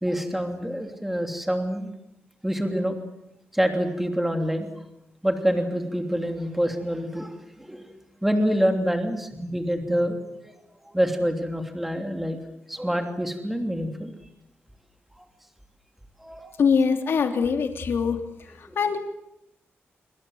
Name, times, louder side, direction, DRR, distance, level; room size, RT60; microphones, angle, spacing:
voice 1, 0.0-1.9 2.4-2.9 3.5-4.7 5.2-7.3 7.6-7.8 8.2-12.4 12.7-14.1 16.2-16.5 18.6-18.8, equal, 5° right, 4 dB, 3.0 m, -26 dB
voice 2, 16.6-18.2 18.8-19.0, left 6 dB, 60° left, 5 dB, 3.2 m, -22 dB
27.0 x 25.5 x 8.0 m, 0.87 s
wide cardioid pair, 170°, 4 cm